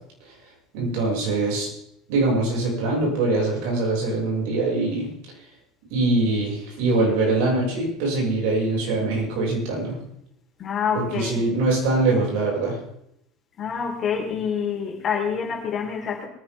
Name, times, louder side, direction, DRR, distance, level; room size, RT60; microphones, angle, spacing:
voice 1, 0.7-1.7 2.1-5.1 5.9-10.0 10.9-12.8, right 2 dB, 70° right, -2 dB, 6.4 m, -23 dB
voice 2, 10.6-11.4 13.6-16.3, left 6 dB, 40° left, 1 dB, 4.2 m, -27 dB
22.5 x 10.0 x 3.7 m, 0.77 s
hypercardioid pair, 85°, 0 cm